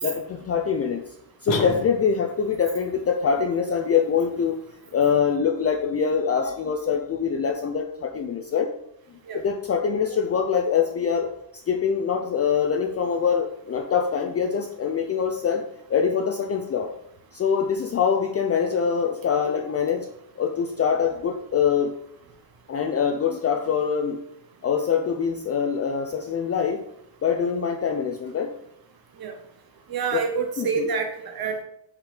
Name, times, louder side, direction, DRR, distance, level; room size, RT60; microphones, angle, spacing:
voice 1, 0.0-1.0 1.4-4.6 4.9-8.7 9.3-11.3 11.7-16.9 17.3-20.1 20.4-21.9 22.7-24.2 24.6-26.8 27.2-28.5 30.6-30.9, left 6 dB, 35° left, 3 dB, 0.5 m, -24 dB
sound 1, 1.5-2.4, left 4 dB, 75° left, 1.1 m, -29 dB
voice 2, 29.9-31.6, right 5 dB, 55° right, 4 dB, 0.8 m, -27 dB
6.3 x 5.0 x 5.0 m, 0.76 s
cardioid pair, 180°, 45 cm